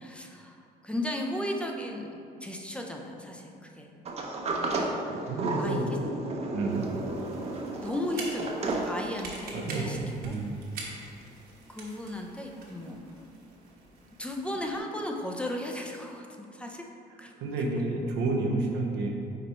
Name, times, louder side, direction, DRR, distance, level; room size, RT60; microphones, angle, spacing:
voice 1, 0.0-4.0 4.5-5.0 5.6-5.8 7.8-10.0 10.3-10.4 11.7-13.0 14.2-16.8 17.2-17.3, left 1 dB, 5° left, 1 dB, 0.6 m, -35 dB
Sliding door, 4.0-9.5, right 2 dB, 40° right, 0.8 m, -33 dB
voice 2, 5.1-5.9 6.5-6.9 9.5-10.6 17.4-19.1, right 3 dB, 90° right, 0 dB, 0.8 m, -30 dB
sound 1, 6.7-14.8, right 2 dB, 65° right, 1.3 m, -45 dB
5.2 x 4.3 x 4.2 m, 2.5 s
cardioid pair, 110°, 17 cm